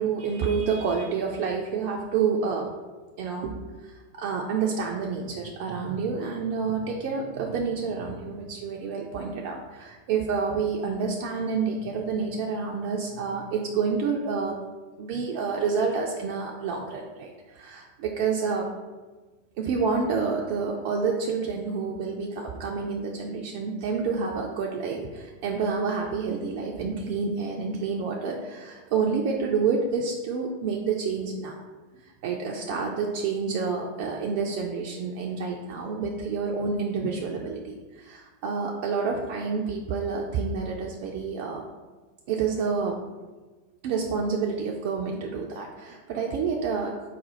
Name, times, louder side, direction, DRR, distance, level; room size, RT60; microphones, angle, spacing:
voice 1, 0.0-2.7 3.2-14.5 15.0-18.7 19.6-31.6 31.9-41.6 42.3-43.0 43.8-46.9, right 5 dB, 50° right, 0 dB, 0.4 m, -28 dB
4.1 x 2.2 x 4.2 m, 1.3 s
figure-of-eight pair, 90°, 0 cm